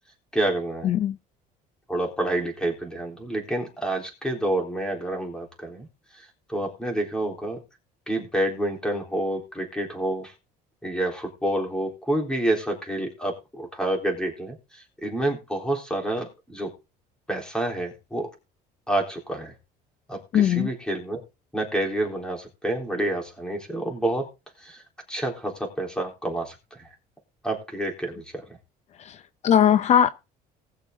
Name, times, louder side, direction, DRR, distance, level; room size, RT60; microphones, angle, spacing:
voice 1, 0.3-0.9 1.9-5.9 6.1-7.6 8.1-10.3 10.8-16.7 17.3-18.3 18.9-19.5 20.1-21.2 21.5-24.3 24.6-24.8 25.1-26.9 27.4-28.5, right 1 dB, 5° left, 3.7 m, -28 dB
voice 2, 20.3-20.7 29.4-30.1, left 9 dB, 40° left, 0.6 m, -19 dB
19.5 x 6.8 x 3.7 m
cardioid pair, 150°, 17 cm